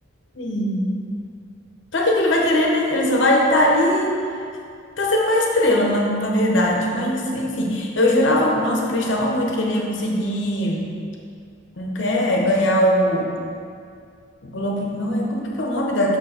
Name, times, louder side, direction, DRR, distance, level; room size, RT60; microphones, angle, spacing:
voice 1, 0.3-0.9 1.9-4.2 5.0-10.8 11.8-13.3 14.4-16.2, left 1 dB, 55° left, -1 dB, 0.9 m, -20 dB
5.9 x 4.4 x 4.3 m, 2.4 s
head